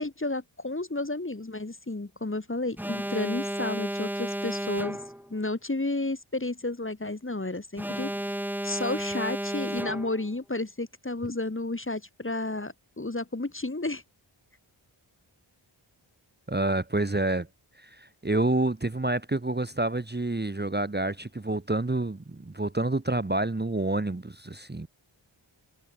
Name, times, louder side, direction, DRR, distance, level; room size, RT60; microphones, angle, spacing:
voice 1, 0.0-5.0 5.3-8.3 8.6-14.0, left 2 dB, 25° left, 1.7 m, -32 dB
Alarm, 2.8-5.3 7.8-10.3, equal, 5° right, 3.4 m, -33 dB
voice 2, 16.5-17.5 17.8-24.9, right 2 dB, 20° right, 1.2 m, -28 dB
wide cardioid pair, 45°, 48 cm